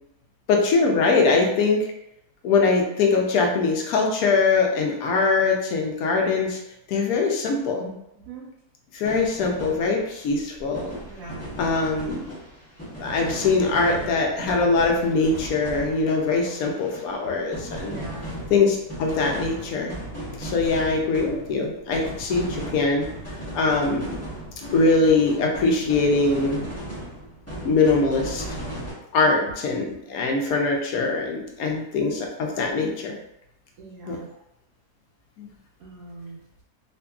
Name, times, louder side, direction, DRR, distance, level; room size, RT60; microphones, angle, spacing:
voice 1, 0.5-1.8 2.4-6.6 6.9-7.9 8.9-10.9 11.6-12.3 13.0-18.0 18.5-19.9 20.4-23.1 23.5-24.2 24.7-26.7 27.6-28.4 29.1-33.1 34.1-34.2 35.4-35.5, left 3 dB, 75° left, 1 dB, 1.0 m, -22 dB
sound 1, 9.0-17.2 17.5-28.9, right 1 dB, 10° left, 0.8 m, -36 dB
voice 2, 11.0-11.5 17.3-17.4 17.8-18.3 29.4-29.5 33.8-34.3 35.8-36.4, right 4 dB, 75° right, -5 dB, 1.1 m, -40 dB
2.8 x 2.5 x 2.3 m, 0.85 s
omnidirectional pair, 1.6 m